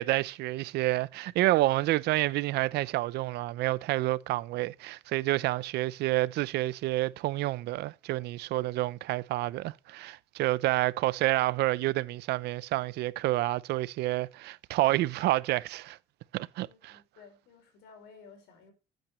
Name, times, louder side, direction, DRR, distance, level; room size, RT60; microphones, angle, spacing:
voice 1, 0.0-16.0 16.3-17.0, right 17 dB, 80° right, 0.6 m, -29 dB
voice 2, 16.5-18.7, left 5 dB, 85° left, 4.9 m, -55 dB
13.0 x 9.1 x 3.1 m
cardioid pair, 110°, 17 cm